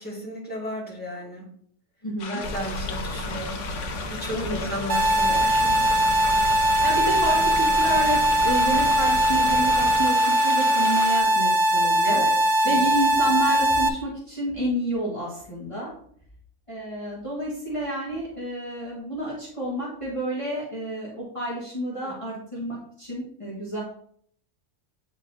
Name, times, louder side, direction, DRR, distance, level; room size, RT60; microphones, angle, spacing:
voice 1, 0.0-1.4 2.3-3.7 4.1-5.8 12.0-12.3 12.6-12.8 22.0-22.4, equal, 10° left, -5 dB, 1.9 m, -34 dB
voice 2, 2.0-2.4 4.3-4.6 6.8-12.2 12.6-15.9 16.7-23.8, right 1 dB, 25° left, -8 dB, 1.6 m, -29 dB
sound 1, 2.2-11.2, left 5 dB, 75° left, 1.0 m, -36 dB
sound 2, 2.4-10.0, left 1 dB, 50° left, 1.8 m, -34 dB
sound 3, 4.9-13.9, equal, 70° right, 0.9 m, -21 dB
8.8 x 4.1 x 2.7 m, 0.62 s
omnidirectional pair, 1.3 m